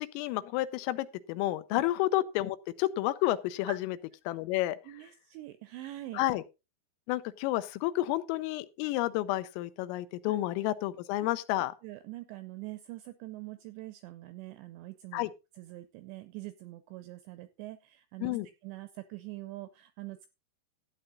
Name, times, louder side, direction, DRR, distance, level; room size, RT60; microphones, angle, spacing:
voice 1, 0.0-4.0 4.3-4.8 6.2-6.4 7.1-11.7 15.1-15.3 18.2-18.5, left 16 dB, 90° left, 3.4 m, -30 dB
voice 2, 4.9-6.2 10.2-10.4 11.2-11.3 11.8-15.2 15.6-18.4 18.6-20.3, right 17 dB, 85° right, 2.5 m, -44 dB
13.0 x 9.0 x 3.9 m
omnidirectional pair, 5.8 m